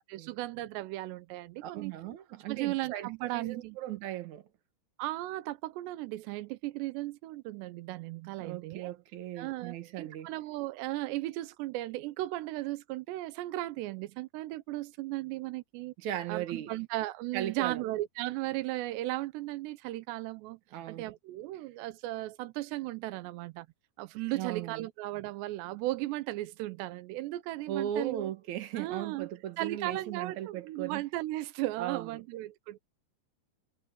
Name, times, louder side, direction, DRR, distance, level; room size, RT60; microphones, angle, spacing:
voice 1, 0.1-1.9 2.5-3.8 5.0-8.9 9.4-15.9 16.3-20.6 20.9-23.7 24.0-28.3 28.8-29.3 29.6-32.8, right 17 dB, 85° right, 3.1 m, -36 dB
voice 2, 1.6-4.5 8.4-10.3 16.0-16.7 17.3-17.9 20.7-21.1 24.3-24.9 27.7-31.0 31.8-32.2, right 11 dB, 60° right, 2.3 m, -37 dB
omnidirectional pair, 4.9 m